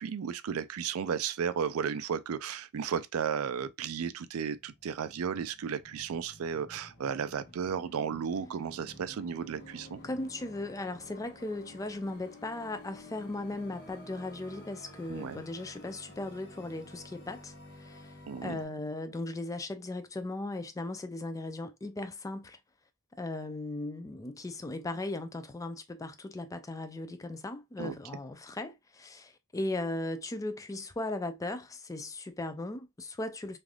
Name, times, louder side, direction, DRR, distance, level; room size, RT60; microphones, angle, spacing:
voice 1, 0.0-10.0 15.1-15.4 18.3-18.6 27.8-27.9, right 7 dB, 70° right, 0.4 m, -34 dB
sound 1, 4.6-18.6, left 1 dB, 50° left, 1.2 m, -51 dB
voice 2, 10.0-22.6 23.2-33.6, left 2 dB, 15° left, 0.3 m, -37 dB
3.3 x 2.5 x 2.2 m
head